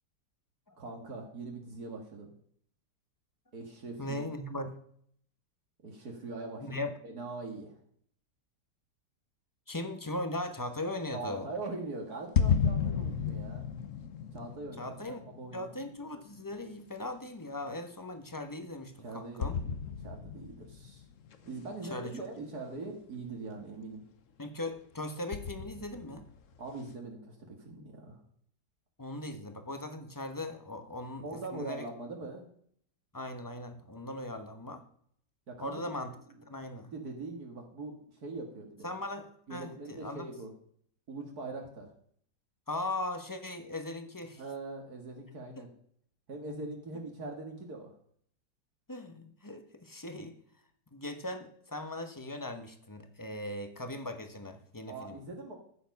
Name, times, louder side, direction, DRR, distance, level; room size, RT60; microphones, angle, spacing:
voice 1, 0.8-2.3 3.5-4.2 5.8-7.7 11.1-13.7 14.3-14.8 15.4-15.7 19.0-19.8 20.0-21.0 21.4-24.0 26.6-28.2 31.2-32.5 35.5-35.8 36.9-38.0 38.2-38.9 39.5-40.5 41.1-41.9 44.4-45.7 46.3-47.9 54.9-55.5, right 3 dB, 65° right, 1 dB, 2.3 m, -42 dB
voice 2, 4.0-4.7 6.6-6.9 9.7-11.5 14.8-15.2 15.5-19.6 21.9-22.2 24.4-26.2 29.0-31.9 33.1-34.8 35.6-36.1 36.5-36.9 38.8-40.3 42.7-44.4 45.6-45.7 48.9-50.4 50.9-55.2, left 1 dB, 15° left, 7 dB, 1.0 m, -39 dB
sound 1, 12.4-17.1 17.7-17.8 19.4-21.6 22.3-22.4 25.3-26.8, left 7 dB, 55° left, 1.2 m, -33 dB
14.5 x 7.1 x 5.3 m, 0.63 s
omnidirectional pair, 1.8 m